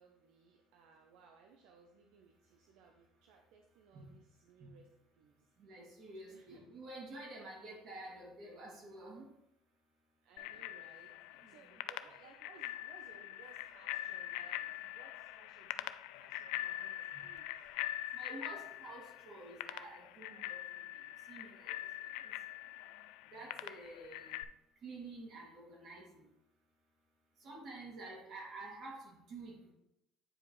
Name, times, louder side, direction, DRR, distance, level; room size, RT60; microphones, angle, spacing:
voice 1, 0.0-4.9 5.2-5.5 6.3-6.6 10.2-17.5, right 6 dB, 75° right, 2 dB, 0.7 m, -62 dB
voice 2, 5.6-9.2 11.4-11.8 17.1-17.2 18.1-20.8 21.3-21.7 22.2-22.3 23.3-24.4 24.8-26.2 27.4-29.6, right 2 dB, 55° right, -2 dB, 2.7 m, -50 dB
Bicycle bell, 10.4-24.4, left 14 dB, 80° left, 0.3 m, -43 dB
8.8 x 4.9 x 3.2 m, 0.84 s
supercardioid pair, 95°, 0 cm